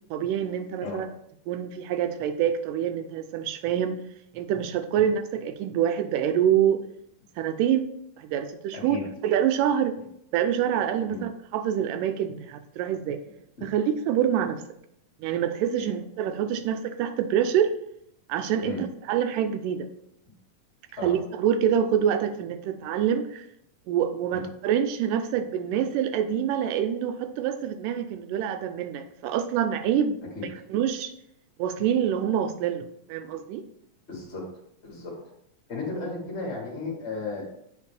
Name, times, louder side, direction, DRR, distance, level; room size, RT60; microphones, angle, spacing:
voice 1, 0.1-1.1 1.5-4.0 4.3-6.8 7.4-7.9 8.2-9.0 9.2-10.0 10.3-13.2 13.6-14.6 15.2-17.7 18.3-19.9 21.0-23.5 23.9-30.2 30.7-31.1 31.6-33.6, right 9 dB, 85° right, 9 dB, 2.2 m, -26 dB
voice 2, 8.7-9.0 11.0-11.2 15.8-15.9 18.6-18.8 21.0-21.1 24.3-24.4 30.3-30.4 34.1-34.4 34.8-35.2 35.7-37.4, left 3 dB, 40° left, -3 dB, 0.9 m, -34 dB
8.5 x 4.1 x 3.3 m, 0.75 s
omnidirectional pair, 3.8 m